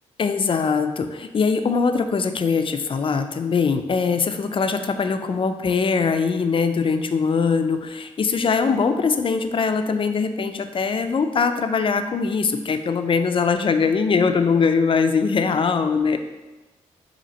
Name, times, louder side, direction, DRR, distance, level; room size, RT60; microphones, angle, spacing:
voice 1, 0.2-16.2, left 5 dB, 40° left, 8 dB, 0.4 m, -22 dB
4.1 x 2.8 x 4.0 m, 1.1 s
cardioid pair, 60°, 13 cm